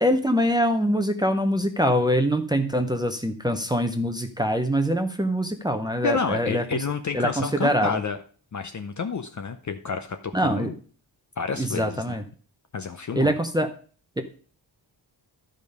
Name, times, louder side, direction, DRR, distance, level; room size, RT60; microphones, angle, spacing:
voice 1, 0.0-6.8 7.1-8.0 10.3-10.7 11.5-12.2 13.1-13.7 14.2-14.3, equal, 10° right, 5 dB, 0.7 m, -24 dB
voice 2, 6.0-8.2 8.5-10.8 11.4-12.2 12.7-13.3, left 5 dB, 40° left, 7 dB, 0.7 m, -29 dB
11.5 x 5.2 x 5.3 m, 0.41 s
wide cardioid pair, 150°, 43 cm